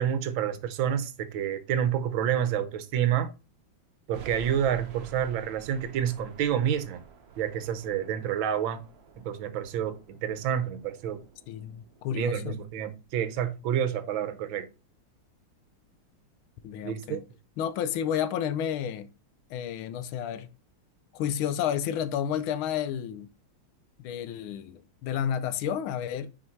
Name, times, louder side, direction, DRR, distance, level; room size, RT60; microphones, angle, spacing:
voice 1, 0.0-3.3 4.1-7.0 7.4-8.8 9.2-11.2 12.1-14.7 16.8-17.2, right 9 dB, 75° right, 1.5 m, -29 dB
sound 1, 4.1-12.7, right 5 dB, 55° right, 1.3 m, -50 dB
voice 2, 11.5-12.6 16.6-17.3 17.6-19.1 19.5-20.5 21.1-23.3 24.0-26.3, left 9 dB, 85° left, 1.5 m, -31 dB
6.3 x 4.5 x 4.4 m
omnidirectional pair, 2.2 m